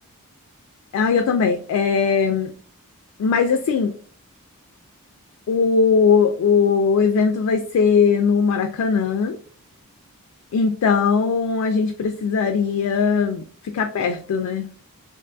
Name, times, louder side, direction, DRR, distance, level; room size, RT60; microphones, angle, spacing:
voice 1, 0.9-2.5 3.2-3.9 5.5-9.4 10.5-14.7, left 5 dB, 70° left, 6 dB, 0.3 m, -19 dB
2.5 x 2.3 x 2.5 m, 0.43 s
head